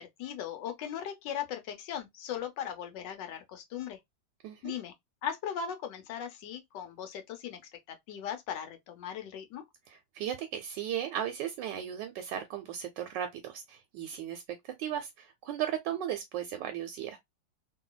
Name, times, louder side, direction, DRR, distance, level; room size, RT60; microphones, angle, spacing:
voice 1, 0.0-4.0 4.6-4.9 5.2-9.6, left 9 dB, 75° left, 1.4 m, -38 dB
voice 2, 9.9-17.2, right 10 dB, 80° right, 1.2 m, -36 dB
3.0 x 2.7 x 2.2 m
omnidirectional pair, 2.0 m